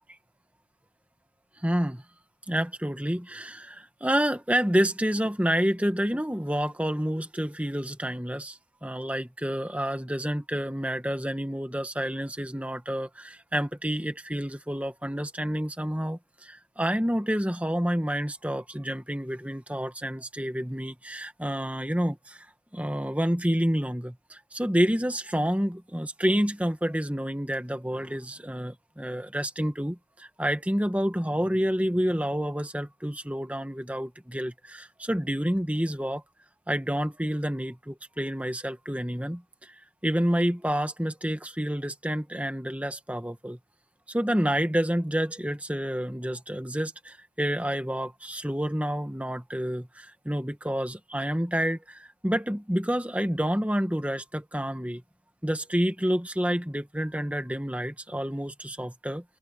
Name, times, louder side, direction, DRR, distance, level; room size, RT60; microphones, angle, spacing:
voice 1, 1.6-2.0 2.5-22.5 22.7-36.2 36.7-39.7 40.0-43.6 44.1-55.0 55.4-59.2, equal, 5° right, 1.6 m, -29 dB
open air
head